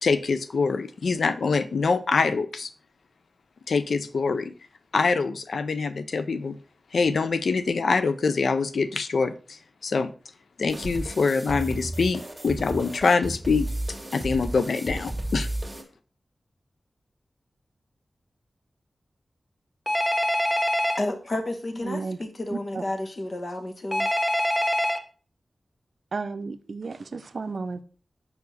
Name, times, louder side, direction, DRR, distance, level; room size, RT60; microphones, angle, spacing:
voice 1, 0.0-2.7 3.7-4.5 4.9-6.6 6.9-10.1 10.6-13.7 14.1-15.5, left 4 dB, 80° left, 0.4 m, -24 dB
sound 1, 10.7-15.8, right 1 dB, 15° right, 1.8 m, -33 dB
Telephone, 19.9-21.0 23.9-25.0, left 1 dB, 20° left, 0.9 m, -24 dB
voice 2, 21.0-24.1, left 1 dB, 50° left, 1.1 m, -31 dB
voice 3, 21.8-22.2 22.5-22.8 26.1-27.8, right 4 dB, 70° right, 0.5 m, -33 dB
5.2 x 4.7 x 4.0 m
cardioid pair, 50°, 0 cm